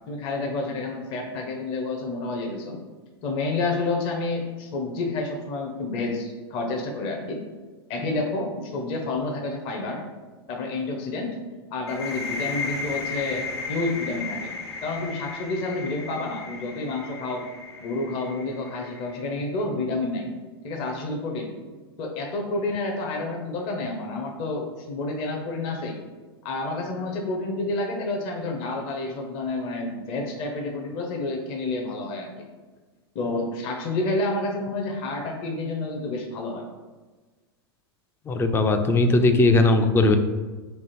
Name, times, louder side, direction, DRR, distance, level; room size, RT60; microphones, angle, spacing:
voice 1, 0.1-2.8 3.2-7.4 7.9-10.0 10.5-11.4 11.7-14.5 14.8-17.5 17.8-20.3 20.6-21.5 22.0-26.0 26.4-32.3 33.1-36.6, left 2 dB, 45° left, 1 dB, 0.7 m, -29 dB
sound 1, 11.9-19.4, left 4 dB, 85° left, 0.7 m, -35 dB
voice 2, 38.3-40.2, left 2 dB, 20° left, 6 dB, 0.3 m, -19 dB
3.4 x 2.4 x 4.3 m, 1.3 s
hypercardioid pair, 100°, 13 cm